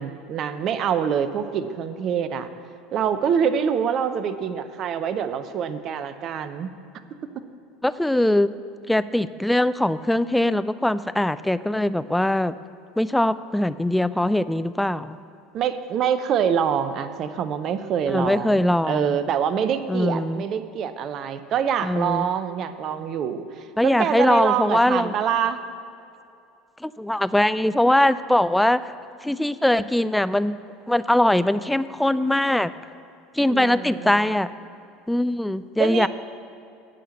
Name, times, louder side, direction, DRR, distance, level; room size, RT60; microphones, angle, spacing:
voice 1, 0.0-2.5 2.9-6.7 15.5-25.6 33.5-34.3 35.8-36.1, right 8 dB, 40° right, 11 dB, 0.6 m, -25 dB
voice 2, 7.8-8.5 8.9-12.6 13.0-15.2 18.1-19.2 19.9-20.4 21.8-22.2 23.8-25.2 26.8-28.9 29.2-30.6 30.9-32.7 33.3-34.5 35.1-36.1, left 1 dB, 5° left, 14 dB, 0.3 m, -21 dB
10.0 x 5.7 x 8.0 m, 2.6 s
figure-of-eight pair, 70°, 0 cm